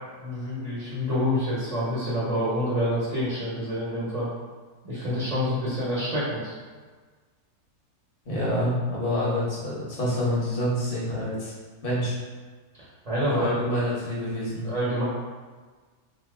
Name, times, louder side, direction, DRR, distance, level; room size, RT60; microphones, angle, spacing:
voice 1, 0.2-4.3 4.8-6.6 13.0-13.6 14.6-15.0, equal, 30° right, -9 dB, 0.8 m, -27 dB
voice 2, 8.2-11.5 11.8-12.2 13.1-14.7, left 1 dB, 40° left, -6 dB, 1.0 m, -27 dB
2.7 x 2.7 x 3.5 m, 1.4 s
omnidirectional pair, 1.6 m